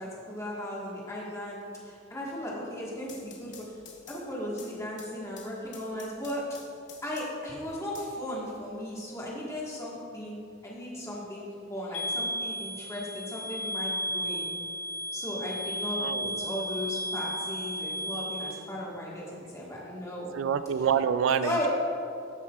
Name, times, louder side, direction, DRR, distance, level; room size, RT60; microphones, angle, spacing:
voice 1, 0.0-3.6 4.1-6.6 7.0-10.4 10.6-14.5 15.1-20.3 20.8-20.9 21.4-21.7, left 1 dB, 15° left, -5 dB, 1.5 m, -36 dB
sound 1, 2.8-7.5 7.9-8.9, left 6 dB, 65° left, 1.0 m, -51 dB
sound 2, 11.9-18.5, equal, 85° left, 1.8 m, -34 dB
voice 2, 16.0-16.4 20.3-21.7, right 7 dB, 70° right, 12 dB, 0.3 m, -27 dB
13.5 x 5.7 x 2.4 m, 2.5 s
head